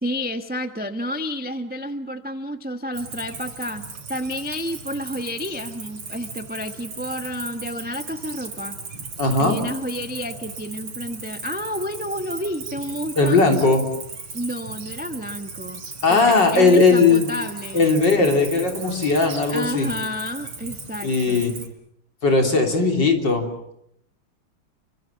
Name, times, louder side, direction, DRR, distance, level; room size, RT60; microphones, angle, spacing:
voice 1, 0.0-8.8 9.4-13.6 14.3-17.8 19.5-21.4, equal, 5° right, 8 dB, 1.0 m, -30 dB
Cricket, 2.9-21.7, right 4 dB, 90° right, 4.4 m, -37 dB
voice 2, 9.2-9.6 13.2-13.8 16.0-17.3 17.7-19.9 21.0-21.5 22.2-23.5, left 3 dB, 55° left, 4 dB, 4.0 m, -18 dB
30.0 x 24.0 x 7.3 m, 0.75 s
omnidirectional pair, 2.3 m